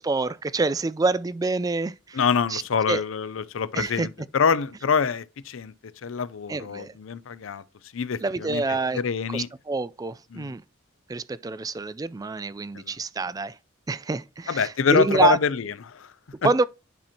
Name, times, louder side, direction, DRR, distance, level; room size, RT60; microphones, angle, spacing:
voice 1, 0.0-2.2 2.5-2.6 2.9-3.0 3.7-4.1 6.5-6.9 8.2-9.0 9.3-10.6 11.1-13.6 13.9-15.4 16.4-16.6, right 3 dB, 20° right, 0.3 m, -26 dB
voice 2, 2.1-5.7 6.0-7.6 7.9-8.6 8.9-9.5 10.3-10.6 12.7-12.9 14.5-16.1 16.4-16.5, left 6 dB, 70° left, 0.5 m, -25 dB
10.5 x 4.3 x 2.8 m
head